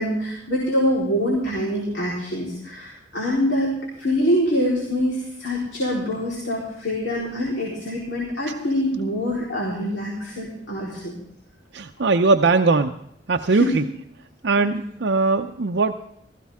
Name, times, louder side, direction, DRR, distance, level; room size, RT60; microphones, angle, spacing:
voice 1, 0.0-3.7 4.0-11.1 13.5-13.7 14.6-14.7, equal, 70° left, -4 dB, 4.0 m, -25 dB
voice 2, 11.7-12.9 13.3-13.8 14.4-15.9, right 3 dB, 70° right, 5 dB, 0.6 m, -20 dB
17.0 x 15.0 x 3.6 m, 0.74 s
head